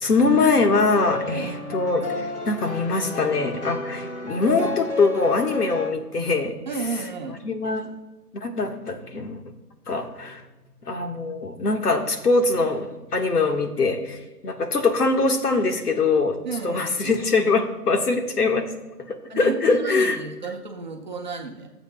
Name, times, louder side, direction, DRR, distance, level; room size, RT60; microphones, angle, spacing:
voice 1, 0.0-6.5 7.4-7.9 8.3-9.4 9.9-10.4 10.9-16.4 16.6-18.7 19.1-20.2, left 3 dB, 70° left, 4 dB, 1.7 m, -23 dB
sound 1, 0.9-5.9, left 3 dB, 45° left, 2.2 m, -32 dB
voice 2, 1.2-1.5 6.7-7.4 16.4-17.2 19.3-21.7, right 4 dB, 30° right, 1 dB, 1.0 m, -32 dB
23.5 x 8.0 x 2.3 m, 1.1 s
hypercardioid pair, 170°, 48 cm